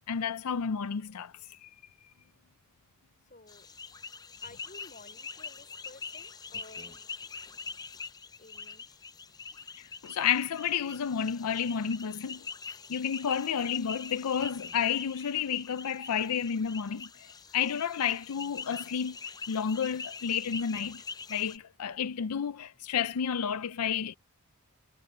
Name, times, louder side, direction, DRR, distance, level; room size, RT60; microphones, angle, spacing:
voice 1, 0.1-1.7 9.5-19.2 19.5-21.0 21.3-24.2, left 7 dB, 85° left, 0.5 m, -31 dB
voice 2, 3.3-3.7 4.4-7.1 8.4-8.9, left 2 dB, 35° left, 3.9 m, -53 dB
sound 1, 3.5-21.6, left 5 dB, 15° left, 0.5 m, -44 dB
head